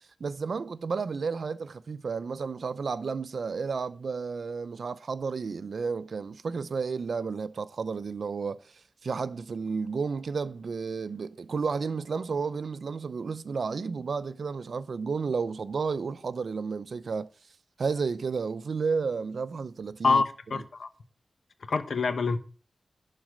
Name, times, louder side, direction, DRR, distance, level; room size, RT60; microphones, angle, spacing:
voice 1, 0.2-8.6 9.0-17.3 17.8-20.2 20.5-20.6, right 5 dB, 70° right, 0.6 m, -32 dB
voice 2, 20.5-20.9 21.7-22.4, left 4 dB, 70° left, 1.0 m, -25 dB
11.5 x 4.1 x 7.6 m
wide cardioid pair, 95°, 0 cm